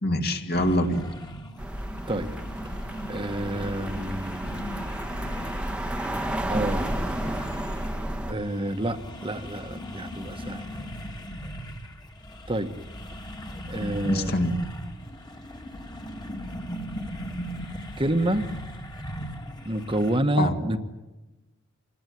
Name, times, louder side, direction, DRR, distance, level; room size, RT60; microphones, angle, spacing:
voice 1, 0.0-1.1 13.7-14.5 20.4-20.6, left 1 dB, 50° left, 4 dB, 2.6 m, -25 dB
sound 1, 0.5-20.2, equal, 20° left, 2.1 m, -39 dB
sound 2, 1.6-8.3, right 1 dB, 5° right, 1.2 m, -31 dB
voice 2, 3.1-4.8 6.5-6.9 8.3-10.6 12.5-12.8 13.6-14.5 18.0-18.5 19.6-20.8, right 1 dB, 25° right, 8 dB, 1.4 m, -28 dB
27.5 x 20.5 x 9.5 m, 1.1 s
head